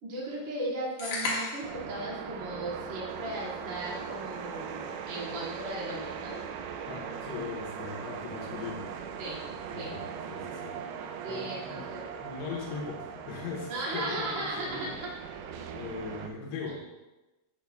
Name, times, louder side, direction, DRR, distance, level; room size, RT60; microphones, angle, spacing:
voice 1, 0.0-6.4 9.2-9.4 9.7-9.9 11.2-12.0 13.7-15.1 16.7-16.8, right 1 dB, 35° right, -6 dB, 1.3 m, -36 dB
sound 1, 1.0-1.8, left 2 dB, 55° left, 2.2 m, -32 dB
sound 2, 1.6-16.3, right 7 dB, 80° right, 2.6 m, -40 dB
voice 2, 6.9-8.9 9.7-10.8 11.3-11.9 12.2-14.9 15.7-16.9, left 4 dB, 80° left, -1 dB, 3.2 m, -39 dB
10.5 x 8.0 x 2.3 m, 1.1 s
omnidirectional pair, 4.9 m